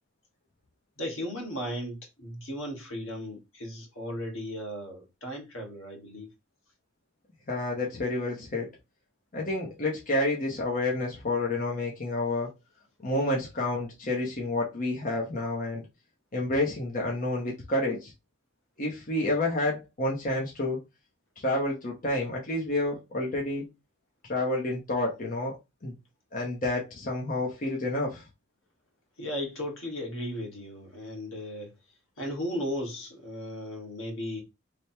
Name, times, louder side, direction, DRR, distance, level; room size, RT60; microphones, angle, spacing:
voice 1, 1.0-6.3 29.2-31.7 32.2-34.4, equal, 80° left, 1.5 m, -36 dB
voice 2, 7.5-8.7 9.3-12.5 13.0-15.8 16.3-18.1 18.8-20.8 21.4-23.6 24.2-25.6 25.8-25.9 26.3-28.3, left 2 dB, 40° left, 0.8 m, -29 dB
3.3 x 2.3 x 4.3 m
head